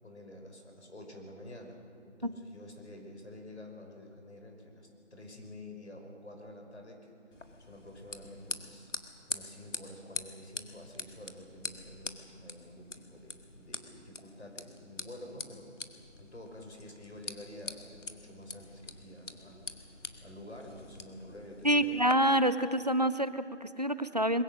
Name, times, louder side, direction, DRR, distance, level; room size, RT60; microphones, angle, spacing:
voice 1, 0.0-7.1 7.7-8.9 9.3-15.7 16.2-19.7 20.2-22.4, left 1 dB, 65° left, 2 dB, 5.4 m, -49 dB
sound 1, 7.3-22.1, left 2 dB, 85° left, 1.9 m, -44 dB
voice 2, 21.6-24.4, right 1 dB, 35° right, 13 dB, 0.6 m, -27 dB
23.0 x 22.0 x 6.4 m, 2.6 s
figure-of-eight pair, 175°, 36 cm